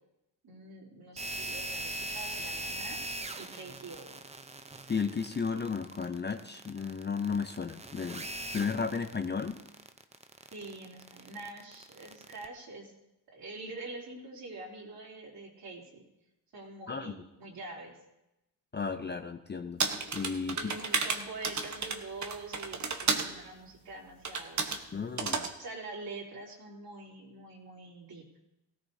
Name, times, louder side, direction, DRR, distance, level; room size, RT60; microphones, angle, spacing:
voice 1, 0.4-4.1 10.5-12.9 13.3-16.0 16.5-18.0 20.5-24.8 25.6-28.2, right 3 dB, 55° right, -2 dB, 3.3 m, -45 dB
sound 1, 1.2-12.5, right 1 dB, 15° right, 0.6 m, -41 dB
voice 2, 4.9-8.3 8.5-9.6 16.9-17.1 18.7-19.8 20.1-20.7 24.9-25.5, left 5 dB, 25° left, 7 dB, 0.6 m, -34 dB
sound 2, 19.8-23.3 24.2-24.8 25.2-25.5, right 5 dB, 40° right, 1.2 m, -32 dB
18.0 x 16.5 x 2.8 m, 0.90 s
cardioid pair, 120°, 43 cm